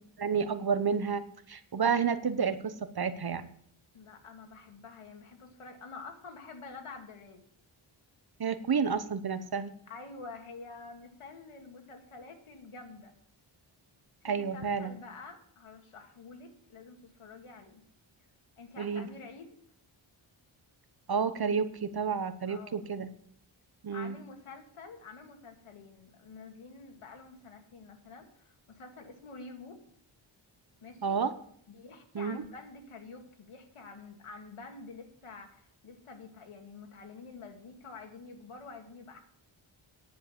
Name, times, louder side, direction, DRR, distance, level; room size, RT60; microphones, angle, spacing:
voice 1, 0.2-1.2 1.5-3.5 8.4-9.7 14.2-14.9 18.8-19.1 21.1-23.1 23.8-24.1 31.0-31.3 32.1-32.4, right 6 dB, 50° right, 11 dB, 1.0 m, -30 dB
voice 2, 3.9-7.4 9.9-13.1 14.2-17.8 18.6-19.6 22.5-22.9 23.9-29.8 30.8-31.2 31.7-39.2, left 4 dB, 90° left, 4 dB, 2.2 m, -48 dB
10.0 x 7.6 x 6.8 m, 0.64 s
wide cardioid pair, 90°, 49 cm